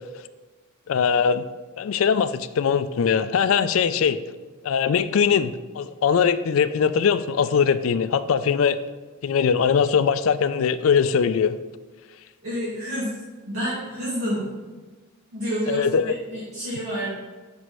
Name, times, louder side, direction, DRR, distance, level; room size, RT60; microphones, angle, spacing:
voice 1, 0.9-1.4 1.8-4.2 4.6-8.8 9.2-11.5 15.7-16.1, left 6 dB, 70° left, 13 dB, 0.4 m, -21 dB
voice 2, 12.4-13.2 13.5-14.4 15.3-17.1, equal, 70° right, -10 dB, 2.3 m, -29 dB
8.2 x 6.1 x 3.1 m, 1.3 s
head